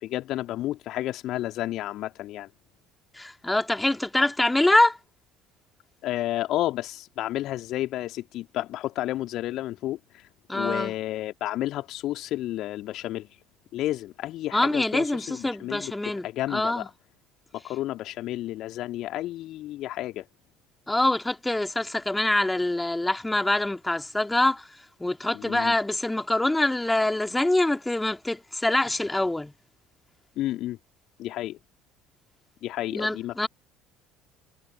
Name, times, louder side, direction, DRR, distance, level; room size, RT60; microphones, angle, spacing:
voice 1, 0.0-2.5 6.0-10.2 10.5-13.3 13.7-16.8 17.5-20.3 25.3-25.7 30.4-30.8 31.2-31.6 32.6-33.3, left 14 dB, 50° left, 2.6 m, -31 dB
voice 2, 3.1-5.0 10.5-10.9 14.5-16.9 20.9-29.5 32.9-33.5, left 2 dB, 10° left, 2.9 m, -25 dB
figure-of-eight pair, 60°, 0 cm